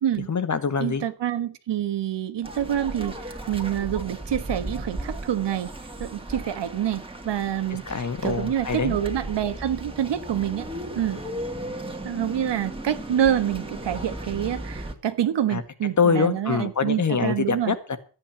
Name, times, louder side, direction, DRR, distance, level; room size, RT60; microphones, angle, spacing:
voice 1, 0.3-1.0 7.9-9.0 15.5-15.6 16.0-18.0, left 5 dB, 45° left, 11 dB, 1.7 m, -24 dB
voice 2, 0.8-5.7 6.0-7.8 8.2-10.7 10.9-11.2 12.0-17.8, right 10 dB, 80° right, 10 dB, 1.6 m, -27 dB
sound 1, 2.4-14.9, right 1 dB, 15° right, 2.4 m, -36 dB
12.5 x 9.1 x 7.1 m, 0.38 s
cardioid pair, 105°, 42 cm